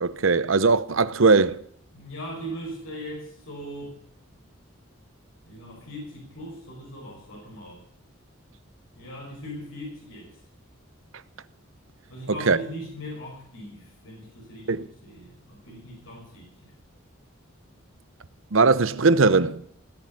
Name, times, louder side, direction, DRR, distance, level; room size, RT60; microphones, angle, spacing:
voice 1, 0.0-1.6 12.5-12.6 14.7-14.9 18.5-19.6, right 4 dB, 75° right, 0.8 m, -19 dB
voice 2, 1.9-4.0 5.5-7.8 9.0-10.4 12.1-14.7 15.0-16.7, equal, 85° left, 5.4 m, -39 dB
17.5 x 7.9 x 9.8 m
head